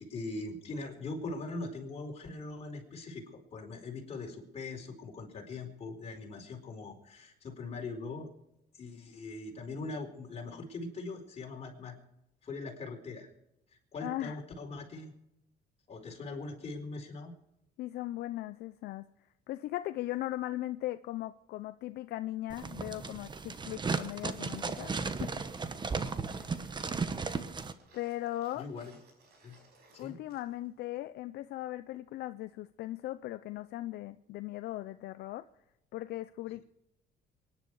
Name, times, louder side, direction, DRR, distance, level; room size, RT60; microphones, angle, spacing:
voice 1, 0.0-8.3 8.8-11.9 12.4-13.3 13.9-15.1 15.9-17.3 26.4-26.6 27.4-27.5 28.5-28.9 29.4-29.6 29.9-30.1, left 3 dB, 40° left, 4.3 m, -41 dB
voice 2, 14.0-14.4 17.8-19.1 19.5-25.4 26.3-26.6 27.9-28.7 30.0-35.5 35.9-36.6, left 15 dB, 75° left, 0.6 m, -38 dB
sound 1, 22.5-27.7, right 4 dB, 25° right, 1.1 m, -35 dB
sound 2, 24.0-30.7 30.9-31.0, right 3 dB, 70° right, 5.6 m, -63 dB
23.5 x 10.5 x 4.8 m
cardioid pair, 110°, 17 cm